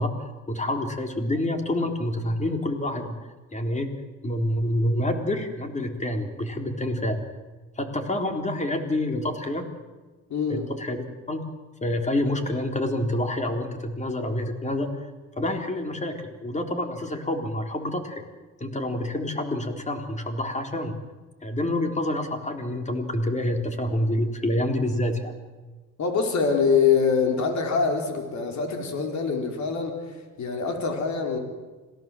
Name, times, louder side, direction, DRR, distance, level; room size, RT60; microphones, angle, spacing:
voice 1, 0.0-3.2 3.5-3.9 4.2-7.2 7.8-9.7 10.5-11.0 11.3-11.4 11.8-15.1 15.4-18.2 18.6-21.0 21.4-25.3, left 1 dB, 25° left, 5 dB, 3.8 m, -27 dB
voice 2, 10.3-10.7 26.0-31.4, left 5 dB, 65° left, 3 dB, 4.7 m, -24 dB
26.5 x 17.5 x 7.8 m, 1.3 s
cardioid pair, 90°, 30 cm